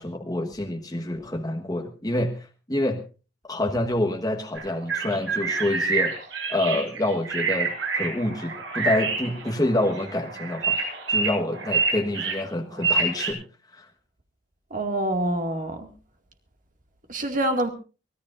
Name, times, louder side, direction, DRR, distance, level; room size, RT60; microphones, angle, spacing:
voice 1, 0.0-3.0 3.5-6.1 6.5-10.8 11.1-13.5 13.8-13.9, left 1 dB, 20° left, 2 dB, 1.4 m, -27 dB
sound 1, 4.6-13.3, right 4 dB, 85° right, 7.9 m, -27 dB
voice 2, 14.7-15.9 17.1-17.7, right 1 dB, 45° right, 5 dB, 2.2 m, -26 dB
24.5 x 16.5 x 2.6 m, 0.34 s
head